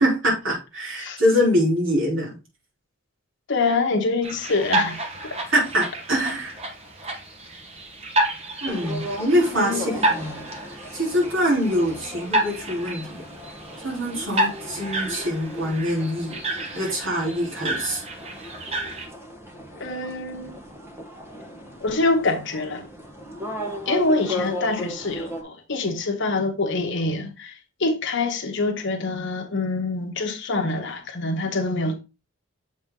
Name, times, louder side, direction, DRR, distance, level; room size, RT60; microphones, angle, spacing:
voice 1, 0.0-2.4 5.5-6.6 8.6-10.4 10.9-13.1 13.8-16.4 16.7-18.0, equal, 65° right, 3.3 m, -24 dB
voice 2, 3.5-5.4 9.5-10.0 19.8-20.6 21.8-22.8 23.9-27.5 27.8-31.9, left 3 dB, 60° left, 1.1 m, -25 dB
sound 1, 4.2-19.1, right 1 dB, 30° right, 1.3 m, -30 dB
sound 2, 8.7-25.4, left 1 dB, 10° right, 1.1 m, -36 dB
7.4 x 4.3 x 3.7 m
head